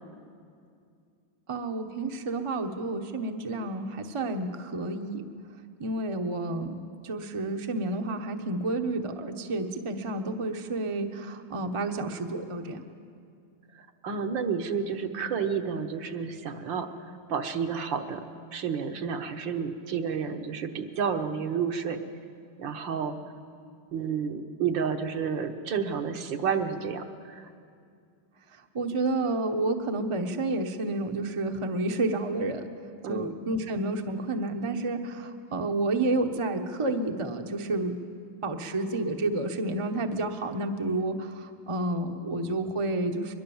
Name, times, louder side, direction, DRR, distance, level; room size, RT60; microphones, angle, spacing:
voice 1, 1.5-5.3 5.8-6.8 7.0-12.8 28.7-32.6 33.1-38.0 38.4-43.3, right 2 dB, 25° right, 5 dB, 0.7 m, -30 dB
voice 2, 14.0-16.9 17.3-18.3 18.5-22.0 22.6-23.2 23.9-27.5 33.0-33.3, right 6 dB, 65° right, 6 dB, 1.8 m, -30 dB
22.5 x 22.0 x 7.1 m, 2.4 s
omnidirectional pair, 2.3 m